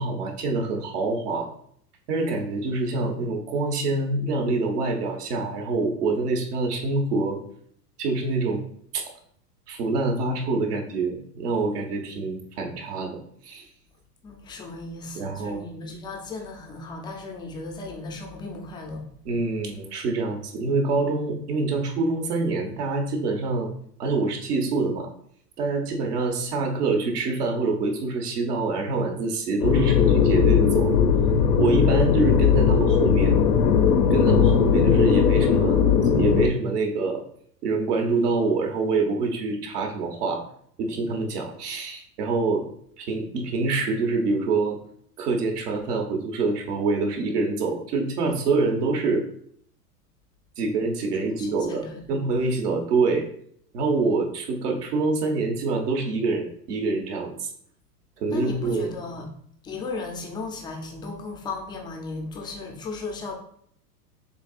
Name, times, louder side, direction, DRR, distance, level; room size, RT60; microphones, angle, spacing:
voice 1, 0.0-1.5 2.1-7.4 8.0-8.7 8.9-9.0 9.7-13.1 13.4-13.6 15.1-15.6 19.2-23.7 24.0-25.1 25.6-30.9 31.6-33.3 34.1-37.2 37.6-40.4 40.8-42.6 43.0-44.8 45.2-49.2 50.6-51.8 52.1-53.2 53.7-57.5 58.2-58.9, right 3 dB, 70° right, 2 dB, 1.2 m, -25 dB
voice 2, 14.2-19.0 51.4-52.5 58.3-59.3 59.6-63.3, left 3 dB, 10° left, 2 dB, 0.3 m, -36 dB
sound 1, 29.6-36.5, left 7 dB, 75° left, 0.7 m, -19 dB
6.8 x 2.8 x 2.4 m, 0.65 s
hypercardioid pair, 105°, 48 cm